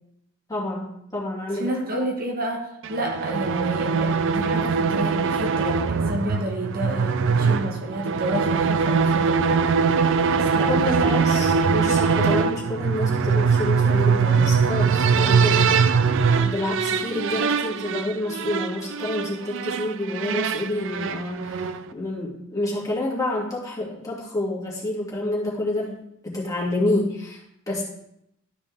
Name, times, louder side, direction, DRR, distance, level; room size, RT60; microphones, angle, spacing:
voice 1, 0.5-1.7 10.7-15.8 16.4-26.0 26.2-27.4 27.7-27.8, left 1 dB, 15° left, -5 dB, 2.4 m, -28 dB
voice 2, 1.5-9.5 10.3-11.1, right 1 dB, 45° right, 1 dB, 1.3 m, -30 dB
sound 1, 2.8-21.9, right 5 dB, 60° right, 0.4 m, -22 dB
12.5 x 5.2 x 3.5 m, 0.77 s
head